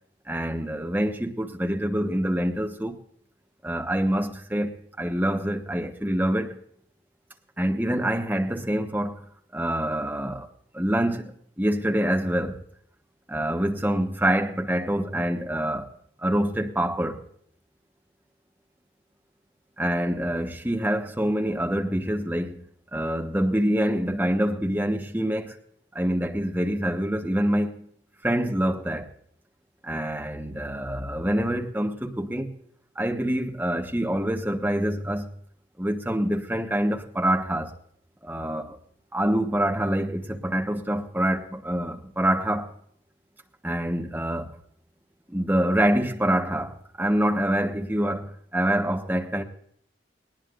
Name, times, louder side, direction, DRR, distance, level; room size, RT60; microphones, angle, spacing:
voice 1, 0.3-3.0 3.6-6.6 7.6-9.2 9.5-10.5 10.7-12.6 13.3-15.9 16.2-17.2 19.8-22.6 22.9-25.6 25.9-27.9 28.2-29.1 29.8-32.6 32.9-35.3 35.8-37.7 38.2-38.8 39.1-42.7 43.6-44.6 45.3-49.4, right 1 dB, 10° right, 1.3 m, -26 dB
20.0 x 19.0 x 2.5 m
head